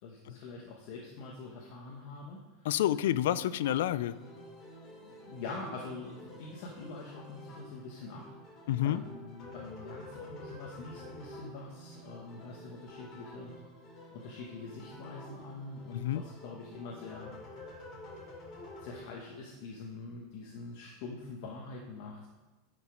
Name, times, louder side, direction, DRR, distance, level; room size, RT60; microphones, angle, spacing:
voice 1, 0.0-2.8 4.9-13.5 14.1-17.3 18.8-22.3, left 3 dB, 60° left, -1 dB, 1.2 m, -45 dB
voice 2, 2.7-4.2 8.7-9.0 15.9-16.2, left 12 dB, 80° left, 17 dB, 0.3 m, -29 dB
sound 1, 3.6-19.0, left 1 dB, 35° left, 3.2 m, -49 dB
9.5 x 5.2 x 5.1 m, 1.1 s
supercardioid pair, 140°, 0 cm